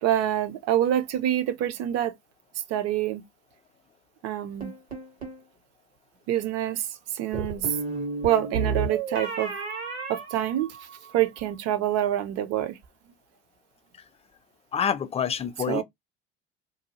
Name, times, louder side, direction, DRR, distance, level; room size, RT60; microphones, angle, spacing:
voice 1, 0.0-2.1 2.7-3.2 4.2-4.7 6.3-6.9 7.1-7.8 8.2-9.5 10.1-10.8 11.1-12.8 15.7-15.8, right 11 dB, 55° right, 0.7 m, -26 dB
sound 1, 4.6-5.4 7.3-11.1, right 4 dB, 85° right, 1.5 m, -32 dB
voice 2, 14.7-15.8, left 7 dB, 20° left, 0.4 m, -27 dB
2.7 x 2.2 x 2.9 m
hypercardioid pair, 65°, 31 cm